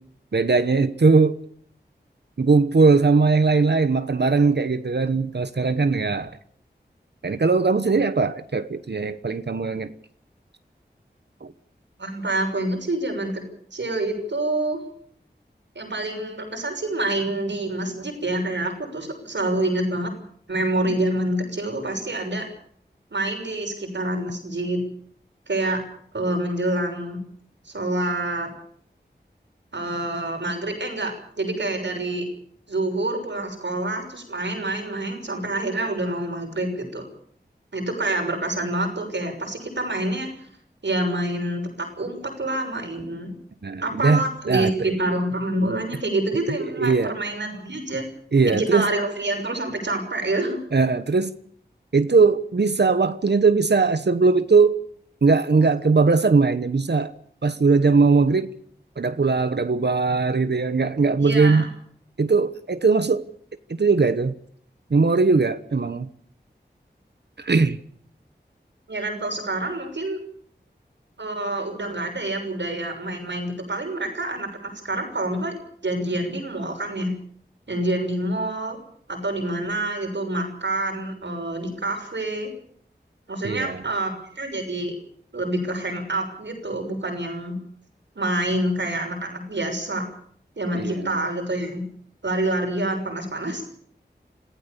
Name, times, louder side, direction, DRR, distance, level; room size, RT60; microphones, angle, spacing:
voice 1, 0.3-1.4 2.4-6.3 7.2-9.9 11.4-11.5 43.6-44.9 46.7-47.1 48.3-48.9 50.7-51.3 51.9-54.8 55.2-57.1 57.4-58.5 59.0-61.7 62.2-63.2 63.7-64.3 64.9-66.1 67.4-67.8 83.4-83.8 90.7-91.1, right 4 dB, 70° right, 11 dB, 1.1 m, -20 dB
voice 2, 12.0-13.4 13.7-14.8 15.7-20.1 20.5-22.5 23.1-24.8 25.5-25.8 26.1-27.2 27.6-28.5 29.7-32.2 32.7-37.0 37.7-40.3 40.8-43.3 43.8-48.1 48.5-50.6 61.2-61.7 68.9-70.2 71.2-75.6 75.8-77.1 77.7-78.8 79.1-82.5 83.3-84.9 85.3-87.6 88.1-90.0 90.6-91.8 92.2-93.6, right 1 dB, 90° right, 4 dB, 6.4 m, -27 dB
26.5 x 16.0 x 7.0 m, 0.62 s
wide cardioid pair, 50°, 18 cm